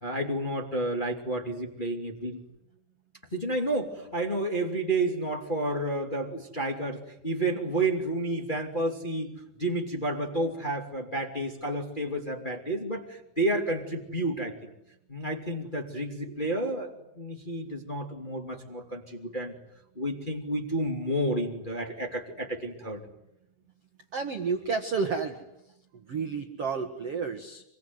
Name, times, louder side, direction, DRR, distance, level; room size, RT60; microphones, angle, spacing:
voice 1, 0.0-2.4 3.3-9.3 9.6-14.6 15.1-19.6 19.9-23.0, right 1 dB, 15° left, 2 dB, 1.6 m, -30 dB
voice 2, 24.1-25.4 25.9-27.6, right 5 dB, 75° right, 6 dB, 1.3 m, -31 dB
25.5 x 24.0 x 9.5 m, 0.81 s
omnidirectional pair, 5.4 m